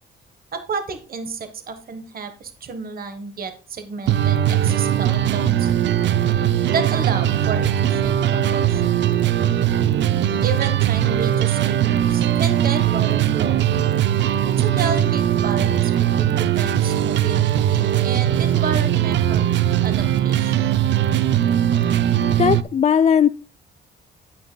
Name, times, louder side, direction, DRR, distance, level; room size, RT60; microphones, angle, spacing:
voice 1, 0.5-5.7 6.7-9.0 10.4-13.7 14.6-19.4 19.8-20.8, right 5 dB, 50° right, 8 dB, 1.3 m, -31 dB
sound 1, 4.1-22.6, right 11 dB, 65° right, 0.5 m, -20 dB
voice 2, 22.4-23.3, left 8 dB, 35° left, 11 dB, 0.4 m, -17 dB
9.8 x 9.0 x 2.2 m, 0.39 s
cardioid pair, 90°, 20 cm